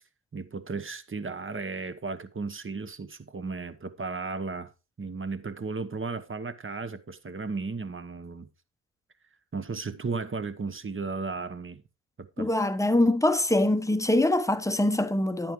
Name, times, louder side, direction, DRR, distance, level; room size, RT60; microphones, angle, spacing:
voice 1, 0.3-4.7 5.0-8.5 9.5-11.8 12.2-12.5, right 4 dB, 25° right, 1.1 m, -35 dB
voice 2, 12.4-15.5, left 1 dB, 5° left, 1.0 m, -24 dB
10.5 x 8.9 x 3.1 m
hypercardioid pair, 45°, 47 cm